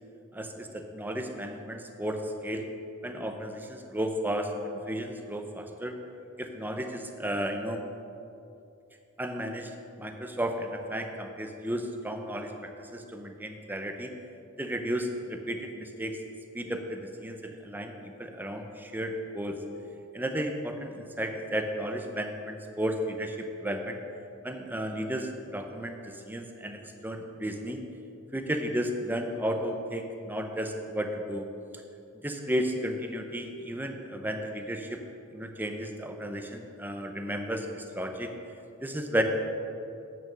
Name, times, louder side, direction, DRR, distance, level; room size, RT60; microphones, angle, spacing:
voice 1, 0.3-2.7 3.0-6.0 6.4-7.8 9.2-9.7 10.0-14.1 14.6-16.2 16.5-17.9 18.2-19.6 20.1-24.0 24.4-27.8 28.3-31.5 32.2-35.0 35.3-38.3 38.8-39.2, equal, 10° right, 4 dB, 0.7 m, -33 dB
8.8 x 6.7 x 6.1 m, 2.7 s
head